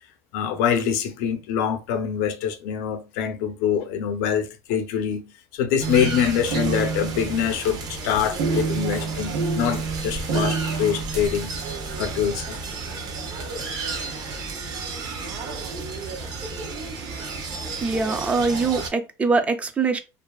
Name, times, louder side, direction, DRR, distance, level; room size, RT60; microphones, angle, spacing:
voice 1, 0.3-5.3 5.5-11.5 12.0-12.6, left 8 dB, 80° left, 0.5 m, -25 dB
sound 1, 5.8-18.9, right 4 dB, 50° right, 0.7 m, -29 dB
voice 2, 17.8-20.0, right 4 dB, 15° right, 0.3 m, -23 dB
2.7 x 2.4 x 2.2 m
cardioid pair, 135°, 8 cm